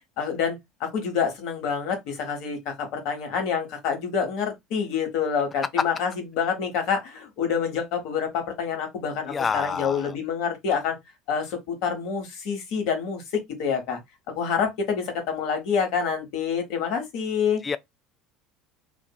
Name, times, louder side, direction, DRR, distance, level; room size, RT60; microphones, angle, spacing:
voice 1, 0.2-11.0 11.3-13.2 13.6-14.0 14.3-17.6, left 6 dB, 60° left, 1.0 m, -27 dB
voice 2, 9.3-10.1 17.6-17.8, left 5 dB, 30° left, 0.3 m, -28 dB
2.6 x 2.5 x 2.2 m
hypercardioid pair, 70°, 0 cm